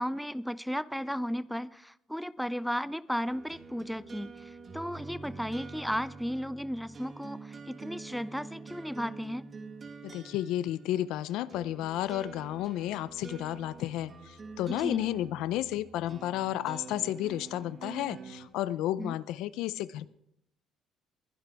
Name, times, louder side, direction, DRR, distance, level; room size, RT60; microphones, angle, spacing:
voice 1, 0.0-9.5 14.7-15.1 19.0-19.1, equal, ahead, 17 dB, 0.4 m, -35 dB
sound 1, 3.3-18.5, right 4 dB, 35° right, 2.0 m, -46 dB
voice 2, 10.0-20.1, left 13 dB, 85° left, 17 dB, 0.5 m, -32 dB
21.5 x 11.0 x 3.5 m, 0.74 s
cardioid pair, 105°, 0 cm